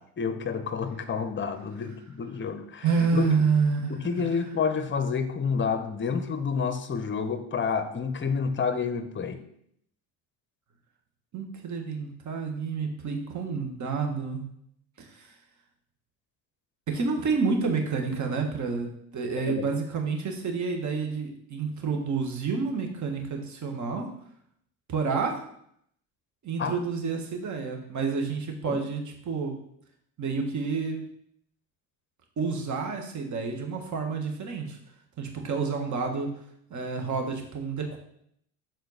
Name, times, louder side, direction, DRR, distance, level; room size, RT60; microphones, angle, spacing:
voice 1, 0.0-2.9 3.1-3.3 3.9-9.4 19.5-19.6 26.6-26.8 28.7-28.8, left 5 dB, 25° left, 9 dB, 0.9 m, -29 dB
voice 2, 2.8-4.3 11.3-14.4 15.1-15.3 16.9-24.1 24.9-25.4 26.4-29.5 30.2-31.1 32.4-34.8 35.2-36.3 36.7-38.0, right 5 dB, 40° right, 3 dB, 1.6 m, -29 dB
6.5 x 4.3 x 4.1 m, 0.70 s
hypercardioid pair, 75°, 43 cm